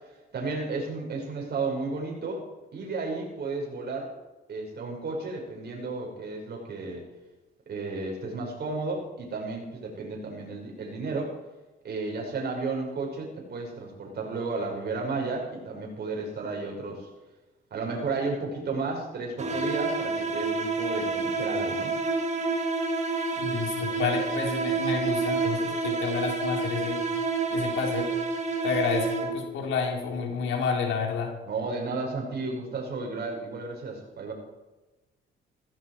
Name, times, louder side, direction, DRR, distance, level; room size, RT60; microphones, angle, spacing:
voice 1, 0.3-2.4 2.7-4.1 4.5-7.0 7.7-11.3 11.8-17.1 17.7-21.9 31.5-34.3, right 3 dB, 55° right, 0 dB, 5.7 m, -33 dB
sound 1, 19.4-29.6, right 4 dB, 35° right, 2.1 m, -29 dB
voice 2, 23.4-27.0 27.5-28.1 28.6-31.3, left 6 dB, 80° left, 1 dB, 4.3 m, -30 dB
16.5 x 16.0 x 4.9 m, 1.1 s
cardioid pair, 90°, 20 cm